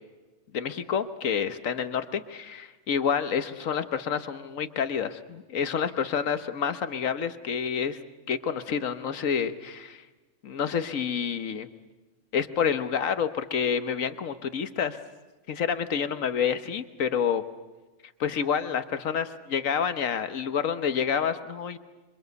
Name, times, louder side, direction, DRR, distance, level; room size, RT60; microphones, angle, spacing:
voice 1, 0.5-2.0 2.3-8.0 8.3-10.0 10.4-11.7 12.3-15.0 15.5-17.4 18.2-21.8, left 7 dB, 90° left, 10 dB, 1.5 m, -28 dB
27.5 x 24.0 x 8.1 m, 1.2 s
omnidirectional pair, 1.3 m